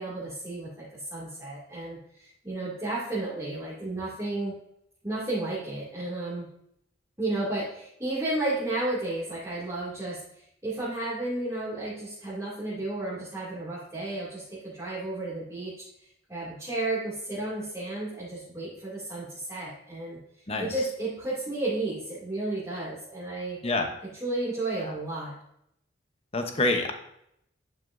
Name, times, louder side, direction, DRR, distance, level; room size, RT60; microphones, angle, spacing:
voice 1, 0.0-4.6 5.0-6.5 7.2-15.8 16.3-20.2 20.6-23.6 24.2-25.3, right 2 dB, 15° right, -10 dB, 2.4 m, -32 dB
voice 2, 26.3-26.9, left 2 dB, 30° left, 5 dB, 0.9 m, -26 dB
11.0 x 6.2 x 2.6 m, 0.74 s
head